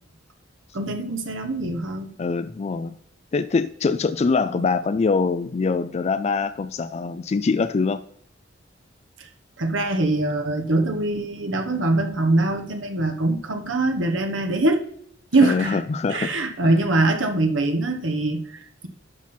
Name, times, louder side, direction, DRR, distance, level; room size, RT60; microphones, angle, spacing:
voice 1, 0.7-2.2 9.2-9.3 9.6-14.8 15.3-15.8 16.1-18.9, right 2 dB, 85° right, 5 dB, 1.3 m, -23 dB
voice 2, 2.2-2.9 3.3-8.0 15.4-16.3 16.6-16.7, left 4 dB, 35° left, 12 dB, 0.3 m, -23 dB
11.5 x 5.8 x 4.4 m, 0.71 s
head